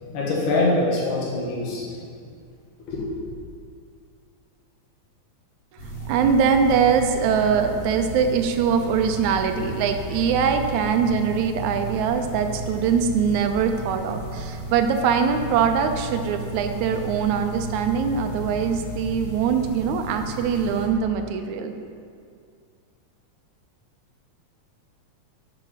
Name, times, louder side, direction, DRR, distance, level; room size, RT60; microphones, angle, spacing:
voice 1, 0.0-1.9 2.9-3.2, left 2 dB, 80° left, -5 dB, 2.9 m, -24 dB
sound 1, 5.8-20.9, equal, 60° left, 2.7 m, -34 dB
voice 2, 5.8-21.7, right 6 dB, 80° right, 6 dB, 2.0 m, -22 dB
11.0 x 5.0 x 5.6 m, 2.3 s
omnidirectional pair, 3.5 m